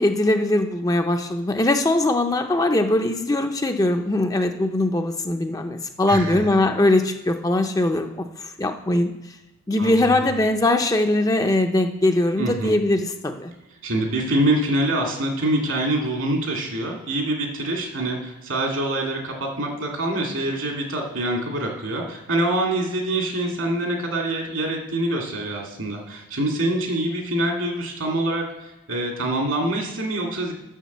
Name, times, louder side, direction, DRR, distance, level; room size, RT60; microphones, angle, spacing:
voice 1, 0.0-9.1 9.7-13.5, left 1 dB, 15° left, 5 dB, 0.5 m, -21 dB
voice 2, 6.1-6.5 9.8-10.3 12.4-12.7 13.8-30.5, right 1 dB, 75° right, 1 dB, 2.1 m, -25 dB
7.2 x 6.3 x 7.1 m, 0.99 s
head